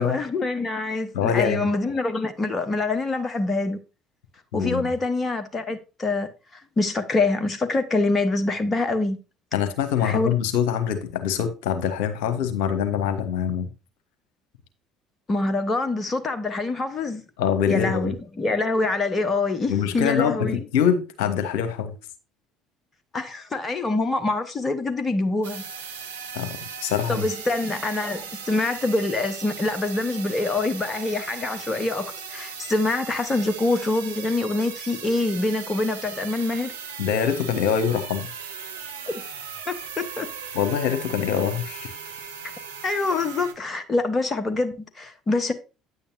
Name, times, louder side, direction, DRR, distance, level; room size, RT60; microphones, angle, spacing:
voice 1, 0.0-3.8 4.5-9.2 10.0-10.3 15.3-17.2 17.7-20.6 23.1-25.6 27.1-36.7 39.1-39.2 39.7-40.3 42.8-45.5, left 2 dB, 25° left, 1.0 m, -25 dB
voice 2, 1.1-1.6 4.5-4.8 9.5-13.7 17.4-18.1 19.7-20.4 20.7-21.9 26.3-27.3 37.0-38.3 40.5-41.9, left 8 dB, 60° left, 1.2 m, -24 dB
sound 1, 25.4-43.5, right 6 dB, 75° right, 1.0 m, -38 dB
9.5 x 8.4 x 2.7 m
figure-of-eight pair, 55°, 0 cm